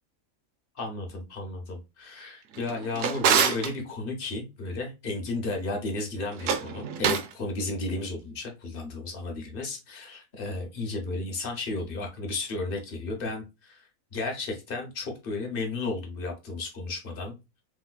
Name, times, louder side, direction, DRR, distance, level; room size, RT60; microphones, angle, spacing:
voice 1, 0.8-17.3, left 3 dB, 45° left, 2 dB, 1.0 m, -33 dB
Drawer open or close, 2.5-3.7 6.3-7.3, right 7 dB, 70° right, 0.9 m, -26 dB
3.4 x 3.3 x 2.2 m, 0.26 s
omnidirectional pair, 1.5 m